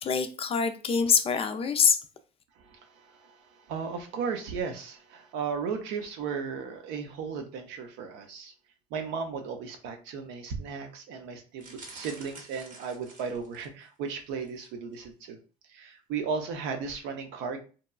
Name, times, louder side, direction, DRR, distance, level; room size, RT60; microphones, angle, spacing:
voice 1, 0.0-2.0, left 6 dB, 30° left, 0.4 m, -25 dB
voice 2, 2.6-8.5 8.9-15.4 15.7-17.6, right 5 dB, 75° right, 0.6 m, -35 dB
sound 1, 11.6-13.9 14.4-14.7 14.9-15.0, right 3 dB, 50° right, 0.8 m, -48 dB
2.9 x 2.2 x 2.2 m
supercardioid pair, 80°, 18 cm